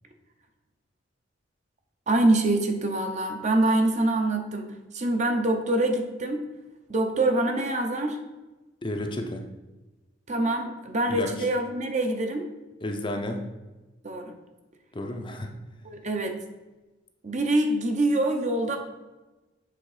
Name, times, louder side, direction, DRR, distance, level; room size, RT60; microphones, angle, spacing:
voice 1, 2.1-4.7 4.9-6.4 6.9-8.2 10.3-12.4 14.0-14.3 15.8-16.4 17.2-18.8, right 2 dB, 40° right, 5 dB, 0.7 m, -25 dB
voice 2, 8.8-9.4 11.1-11.5 12.8-13.4 14.9-15.5, left 1 dB, 25° left, 3 dB, 0.6 m, -32 dB
7.7 x 3.6 x 4.9 m, 1.1 s
head